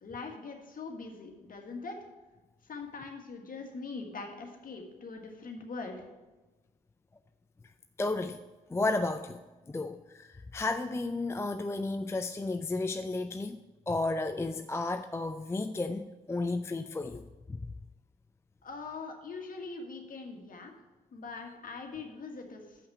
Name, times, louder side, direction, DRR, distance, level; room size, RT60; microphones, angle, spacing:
voice 1, 0.0-2.0 2.7-6.1 18.6-20.7 21.1-22.8, left 4 dB, 45° left, 3 dB, 1.6 m, -42 dB
voice 2, 8.0-8.4 8.7-9.4 9.7-13.6 13.9-17.3, left 2 dB, 15° left, 9 dB, 0.4 m, -33 dB
6.7 x 5.7 x 6.6 m, 1.2 s
hypercardioid pair, 40°, 19 cm